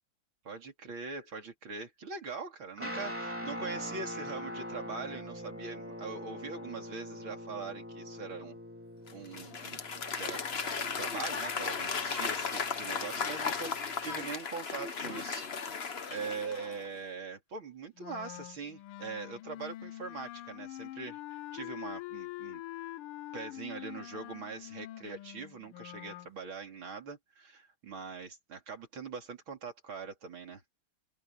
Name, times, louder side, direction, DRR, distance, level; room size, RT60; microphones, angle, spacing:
voice 1, 0.4-8.6 9.1-22.6 23.3-30.6, right 5 dB, 65° right, 4.1 m, -42 dB
Guitar, 2.8-14.2, left 1 dB, 5° right, 3.6 m, -44 dB
Applause / Crowd, 9.1-16.9, left 5 dB, 35° left, 1.1 m, -36 dB
Wind instrument woodwind instrument, 18.0-26.3, left 15 dB, 90° left, 1.6 m, -45 dB
open air
omnidirectional pair, 2.3 m